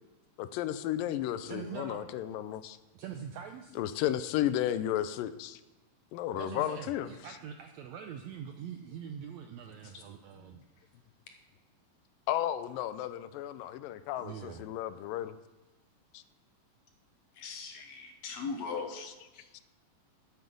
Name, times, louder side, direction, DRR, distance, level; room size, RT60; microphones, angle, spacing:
voice 1, 0.4-2.8 3.8-5.6 6.1-7.1 12.3-15.4 16.1-16.2 19.5-19.6, left 12 dB, 85° left, 13 dB, 2.3 m, -33 dB
voice 2, 1.2-2.1 2.9-3.8 6.4-10.6 13.3-13.4 14.2-14.6 18.3-18.7, right 8 dB, 85° right, 5 dB, 1.6 m, -44 dB
voice 3, 17.4-19.4, left 4 dB, 65° left, 4 dB, 1.8 m, -39 dB
12.5 x 8.1 x 5.3 m, 1.1 s
omnidirectional pair, 3.9 m